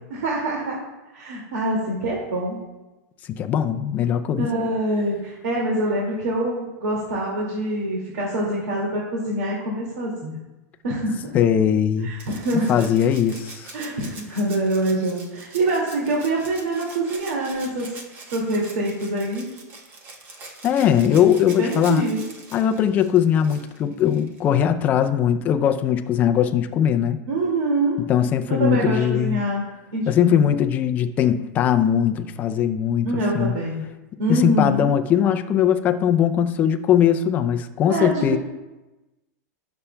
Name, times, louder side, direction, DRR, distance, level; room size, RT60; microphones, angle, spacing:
voice 1, 0.1-0.8 1.1-2.6 4.4-10.4 10.8-11.3 12.0-12.9 13.7-17.9 18.3-19.5 21.6-22.2 27.3-28.0 28.5-29.6 29.9-30.4 33.0-33.8 34.2-34.9 37.9-38.4, right 1 dB, 70° right, -3 dB, 2.2 m, -25 dB
voice 2, 3.3-4.5 11.3-12.1 12.5-13.7 20.6-22.0 22.5-27.2 28.0-29.4 30.1-33.6 34.3-38.4, left 9 dB, 20° left, 9 dB, 0.4 m, -20 dB
Rattle (instrument), 12.2-24.5 25.9-26.0, right 3 dB, 20° right, 0.9 m, -43 dB
18.0 x 6.9 x 2.2 m, 1.1 s
supercardioid pair, 175°, 9 cm